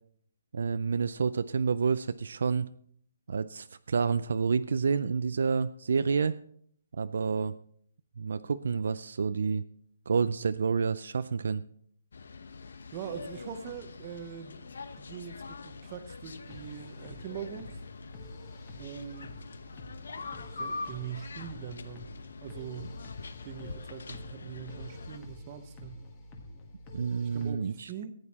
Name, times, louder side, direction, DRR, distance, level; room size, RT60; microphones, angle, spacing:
voice 1, 0.5-2.7 3.3-6.4 6.9-7.5 8.2-9.6 10.1-11.6 26.9-27.9, right 5 dB, 65° right, 13 dB, 0.4 m, -29 dB
sound 1, 12.1-25.2, left 4 dB, 70° left, 0.9 m, -44 dB
voice 2, 12.9-14.6 15.0-17.8 18.8-19.3 20.1-22.1 22.4-22.9 23.4-26.0 27.2-28.1, right 8 dB, 25° right, 9 dB, 0.9 m, -42 dB
sound 2, 16.5-27.5, left 1 dB, 20° left, 1.4 m, -48 dB
14.5 x 9.3 x 4.2 m, 0.62 s
hypercardioid pair, 170°, 0 cm